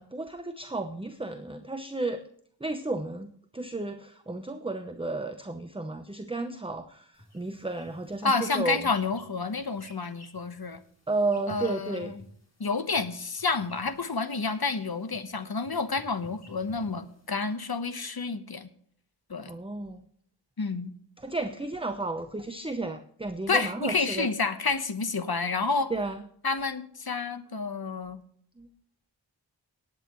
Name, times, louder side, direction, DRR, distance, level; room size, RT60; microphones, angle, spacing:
voice 1, 0.0-2.2 2.6-8.8 11.1-12.1 19.5-20.1 21.2-24.3 25.9-26.2 28.6-28.7, right 2 dB, 10° right, 7 dB, 0.8 m, -33 dB
sound 1, 7.1-17.5, left 1 dB, 35° left, 3.5 m, -54 dB
voice 2, 8.2-10.8 11.5-12.3 12.6-18.7 19.3-19.5 20.6-20.9 23.5-25.9 26.4-28.2, left 4 dB, 55° left, 10 dB, 1.1 m, -29 dB
18.5 x 8.8 x 3.1 m, 0.64 s
wide cardioid pair, 45°, 46 cm